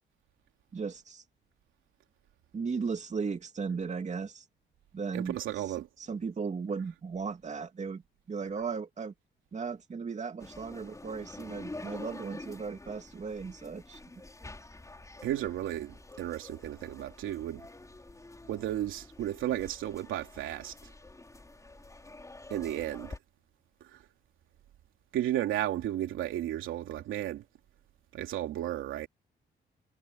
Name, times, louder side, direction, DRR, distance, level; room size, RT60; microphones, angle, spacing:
voice 1, 0.7-1.2 2.5-4.4 4.9-5.4 6.1-8.0 8.3-9.1 9.5-14.0, right 5 dB, 35° right, 2.6 m, -36 dB
voice 2, 5.1-5.9 15.2-17.7 18.5-20.7 22.5-23.1 23.8-24.0 25.1-27.4 28.1-29.1, right 12 dB, 85° right, 3.0 m, -33 dB
sound 1, 10.4-23.2, left 2 dB, 15° left, 5.5 m, -48 dB
cardioid pair, 90°, 20 cm